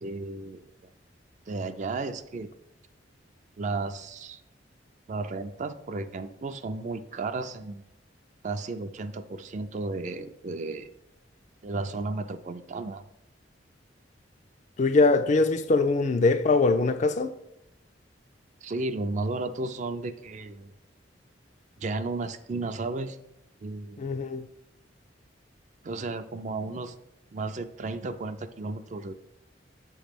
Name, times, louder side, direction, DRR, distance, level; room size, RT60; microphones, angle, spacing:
voice 1, 0.0-0.9 1.5-2.5 3.6-4.4 5.1-7.8 8.4-10.9 11.6-13.0 18.6-20.7 21.8-23.2 23.6-24.1 25.8-26.9 27.3-29.1, right 3 dB, 40° right, 0.4 m, -33 dB
voice 2, 14.8-17.3 24.0-24.5, left 3 dB, 40° left, 0.4 m, -22 dB
7.5 x 3.1 x 5.1 m
head